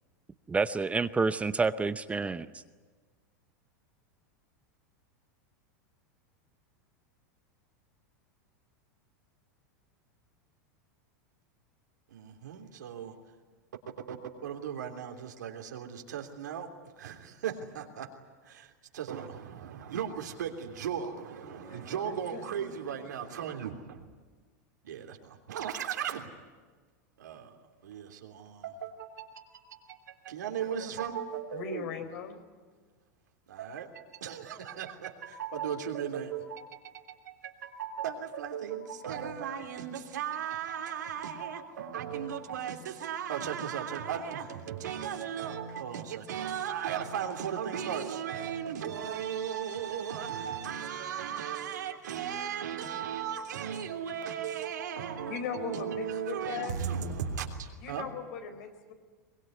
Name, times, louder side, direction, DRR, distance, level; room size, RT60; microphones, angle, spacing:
voice 1, 0.5-2.6, right 4 dB, 15° right, 13 dB, 0.8 m, -29 dB
voice 2, 12.1-13.2 14.1-14.2 14.4-16.7 17.0-18.1 18.4-24.0 24.8-26.3 27.2-27.5 27.8-31.9 33.5-58.1, right 8 dB, 90° right, 4 dB, 3.2 m, -36 dB
voice 3, 21.4-22.7 31.5-32.4 55.3-56.8 57.8-58.9, left 6 dB, 70° left, 7 dB, 4.4 m, -39 dB
23.0 x 21.5 x 9.5 m, 1.4 s
hypercardioid pair, 115°, 9 cm